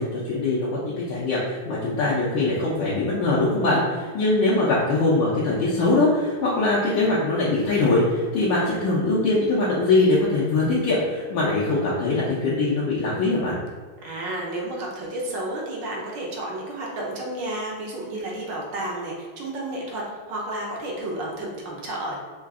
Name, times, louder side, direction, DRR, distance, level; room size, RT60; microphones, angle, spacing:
voice 1, 0.0-13.6, left 2 dB, 70° left, -6 dB, 1.4 m, -22 dB
voice 2, 14.0-22.2, right 1 dB, 65° right, -3 dB, 1.3 m, -31 dB
4.7 x 2.4 x 3.5 m, 1.5 s
omnidirectional pair, 2.4 m